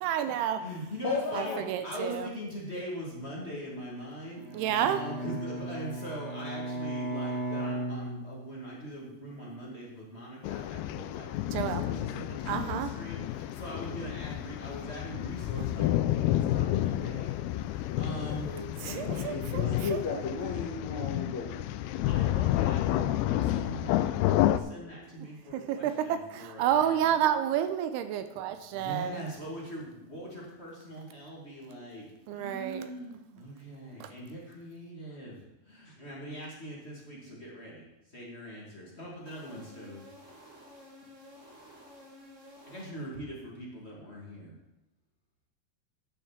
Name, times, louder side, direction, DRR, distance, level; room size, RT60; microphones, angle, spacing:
voice 1, 0.0-0.6 1.3-2.3 4.5-5.0 11.5-11.8 12.5-12.9 18.8-20.0 25.5-29.2 32.3-32.9 34.0-34.1, right 10 dB, 80° right, 10 dB, 2.6 m, -30 dB
voice 2, 0.5-18.5 18.8-20.0 22.1-27.2 28.7-40.0 42.7-44.5, right 1 dB, 30° left, -4 dB, 1.2 m, -42 dB
voice 3, 1.0-1.6 18.4-18.7 19.2-21.6, left 4 dB, 65° left, -1 dB, 2.0 m, -34 dB
Bowed string instrument, 4.3-8.7, right 1 dB, 55° right, 4.7 m, -36 dB
sound 1, 10.4-24.6, left 13 dB, 90° left, 2.1 m, -30 dB
sound 2, 39.3-43.3, left 1 dB, 35° right, 1.2 m, -52 dB
9.7 x 7.0 x 7.3 m, 0.93 s
omnidirectional pair, 4.9 m